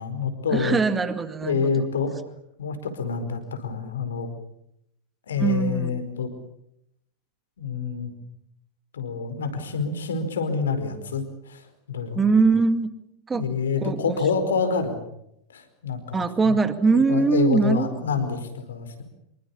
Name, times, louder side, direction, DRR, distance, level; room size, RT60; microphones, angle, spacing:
voice 1, 0.0-0.8 1.4-2.2 2.6-4.3 5.3-6.3 7.6-8.1 8.9-12.2 13.3-15.0 15.5-16.6 16.9-19.0, left 5 dB, 65° left, 9 dB, 4.7 m, -27 dB
voice 2, 0.5-1.7 5.4-6.0 12.1-12.9 13.3-13.4 13.8-14.2 16.1-18.0, right 4 dB, 15° right, 11 dB, 2.2 m, -22 dB
26.5 x 24.0 x 7.1 m, 0.78 s
figure-of-eight pair, 90°, 0 cm